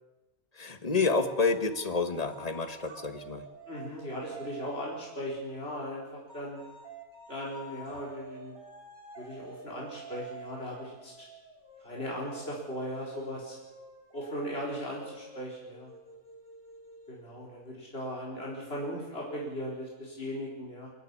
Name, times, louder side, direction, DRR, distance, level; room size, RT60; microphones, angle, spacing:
voice 1, 0.5-3.5, left 4 dB, 30° left, 9 dB, 1.5 m, -29 dB
sound 1, 1.4-5.3 6.3-17.6, right 3 dB, 75° right, 4.3 m, -49 dB
voice 2, 3.7-6.6 7.3-8.6 9.2-11.3 11.8-13.6 14.1-15.9 17.1-20.9, equal, 45° left, -3 dB, 4.8 m, -38 dB
25.0 x 13.5 x 9.8 m, 1.1 s
omnidirectional pair, 1.4 m